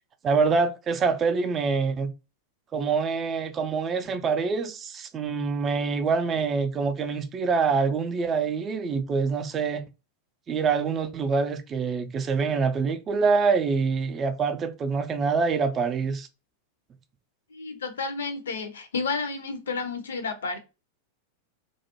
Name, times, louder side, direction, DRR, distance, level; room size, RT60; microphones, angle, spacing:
voice 1, 0.2-2.1 2.7-9.8 10.5-16.3, right 5 dB, 25° right, 0.3 m, -25 dB
voice 2, 17.5-20.6, left 4 dB, 65° left, 0.5 m, -31 dB
2.3 x 2.0 x 2.8 m
figure-of-eight pair, 90°, 0 cm